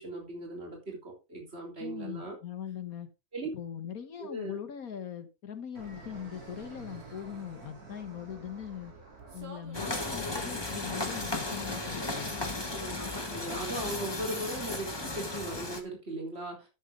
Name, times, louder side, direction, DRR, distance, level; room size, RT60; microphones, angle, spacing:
voice 1, 0.0-2.4 3.3-3.5 4.2-4.6 12.7-13.1 13.3-16.7, right 1 dB, 40° right, 3.9 m, -38 dB
voice 2, 1.8-3.1 3.5-8.9 9.3-12.4, left 8 dB, 70° left, 1.7 m, -41 dB
Fixed-wing aircraft airplane, 5.8-10.9, right 3 dB, 70° right, 3.6 m, -49 dB
sound 1, 9.7-15.8, left 2 dB, 15° left, 1.4 m, -35 dB
13.0 x 7.3 x 3.6 m
omnidirectional pair, 1.6 m